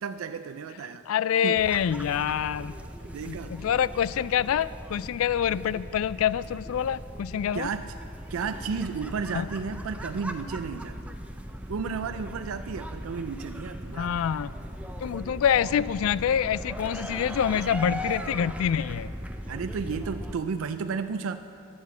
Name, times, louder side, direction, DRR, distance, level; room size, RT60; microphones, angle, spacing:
voice 1, 0.0-1.0 1.4-1.6 3.0-3.7 7.5-7.9 8.3-11.0 11.7-14.2 19.5-21.4, right 5 dB, 70° right, 9 dB, 0.4 m, -33 dB
voice 2, 1.1-2.7 3.3-7.7 9.3-9.5 13.9-14.5 15.0-19.1, left 8 dB, 75° left, 18 dB, 0.3 m, -26 dB
sound 1, 1.5-20.3, equal, 5° right, 0.5 m, -39 dB
11.0 x 9.3 x 7.1 m, 2.6 s
head